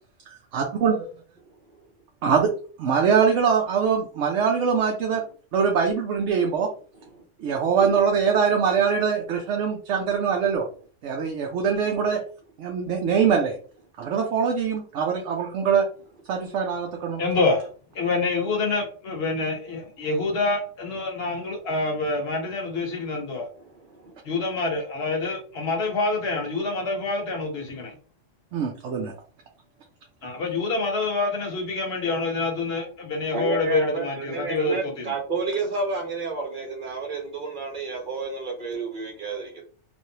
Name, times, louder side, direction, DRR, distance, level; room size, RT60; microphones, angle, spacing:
voice 1, 0.3-1.1 2.2-2.5 2.8-5.2 5.5-6.7 7.4-10.7 11.0-12.2 12.6-13.6 14.0-15.9 16.3-17.2 28.5-29.1, right 6 dB, 80° right, 1 dB, 0.9 m, -23 dB
voice 2, 17.2-17.7 17.9-23.5 24.2-27.9 30.2-35.1, left 3 dB, 60° left, 1 dB, 1.2 m, -26 dB
voice 3, 23.5-24.1 33.3-39.6, right 3 dB, 45° right, 1 dB, 0.9 m, -30 dB
3.1 x 2.6 x 2.7 m, 0.40 s
omnidirectional pair, 1.2 m